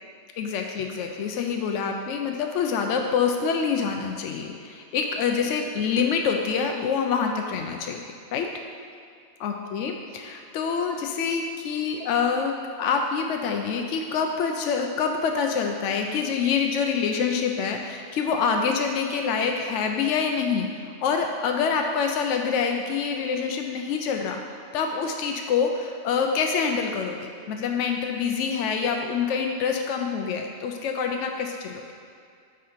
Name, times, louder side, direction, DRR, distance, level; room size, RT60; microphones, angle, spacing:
voice 1, 0.4-8.0 8.3-8.5 9.4-31.8, left 6 dB, 75° left, 3 dB, 0.9 m, -26 dB
8.5 x 3.7 x 4.3 m, 2.4 s
omnidirectional pair, 1.3 m